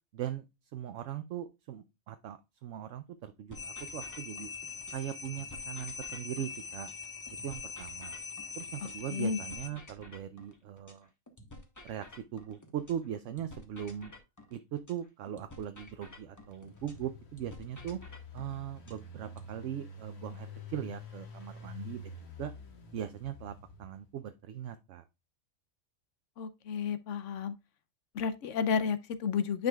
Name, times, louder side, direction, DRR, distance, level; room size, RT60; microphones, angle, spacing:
voice 1, 0.1-0.4 0.7-4.5 4.9-6.9 7.4-8.2 8.6-11.1 11.8-14.1 14.5-18.0 18.3-22.1 22.4-22.5 22.9-25.0, right 10 dB, 70° right, 0.9 m, -40 dB
sound 1, 3.5-9.7, left 5 dB, 30° left, 0.4 m, -42 dB
sound 2, 3.5-5.1 5.4-9.1 9.4-13.1 13.4-17.1 17.4-19.5, left 1 dB, 15° left, 1.0 m, -52 dB
Engine, 16.1-24.2, left 3 dB, 55° left, 1.6 m, -48 dB
voice 2, 26.4-27.5 28.1-29.7, left 6 dB, 70° left, 0.9 m, -31 dB
9.4 x 5.0 x 2.3 m
omnidirectional pair, 1.4 m